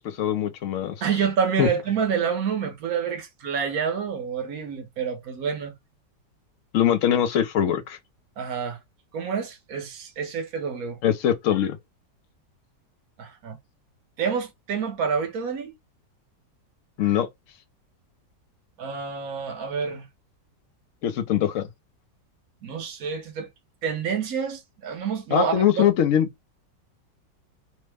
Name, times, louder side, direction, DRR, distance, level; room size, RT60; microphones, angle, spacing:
voice 1, 0.0-1.0 1.6-1.7 6.7-8.0 11.0-11.8 17.0-17.3 21.0-21.7 25.3-26.3, left 10 dB, 70° left, 0.7 m, -22 dB
voice 2, 1.0-5.7 8.4-8.8 9.1-11.0 13.2-13.6 14.2-15.7 18.8-20.1 22.6-23.5 23.8-25.9, right 6 dB, 60° right, 1.1 m, -28 dB
3.2 x 2.1 x 3.3 m
omnidirectional pair, 1.9 m